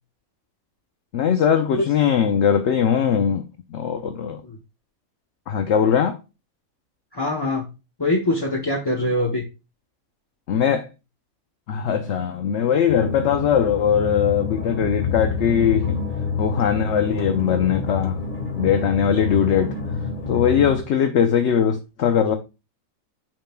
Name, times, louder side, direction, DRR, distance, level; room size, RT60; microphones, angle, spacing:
voice 1, 1.1-3.5 3.7-4.4 5.5-6.2 10.5-10.9 11.7-16.0 16.4-18.2 18.6-19.8 20.3-22.4, left 8 dB, 60° left, 0.9 m, -20 dB
voice 2, 7.1-7.7 8.0-9.4, left 1 dB, 20° left, 0.7 m, -23 dB
sound 1, 12.9-20.8, left 5 dB, 40° left, 1.4 m, -28 dB
8.7 x 5.4 x 2.2 m
omnidirectional pair, 1.5 m